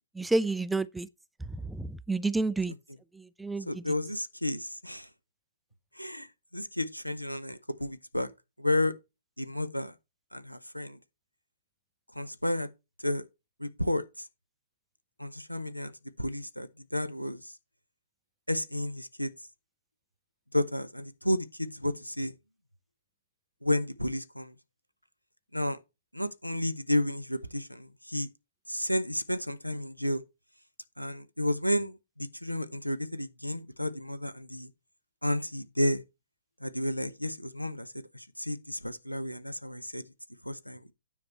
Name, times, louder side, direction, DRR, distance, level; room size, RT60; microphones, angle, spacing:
voice 1, 0.2-1.1 1.7-2.7 3.4-3.7, right 2 dB, 5° right, 0.4 m, -29 dB
voice 2, 3.7-5.1 6.0-6.3 6.5-8.3 8.6-9.0 9.4-9.9 10.3-11.0 12.1-12.7 13.0-13.3 13.6-14.3 15.2-15.9 16.2-17.5 18.5-19.3 20.5-22.3 23.6-24.5 25.5-25.8 26.1-28.3 28.7-30.2 31.0-34.7 35.2-36.0 36.6-40.0 40.4-40.9, left 1 dB, 90° left, 0.8 m, -32 dB
9.7 x 5.0 x 4.4 m
figure-of-eight pair, 115°, 0 cm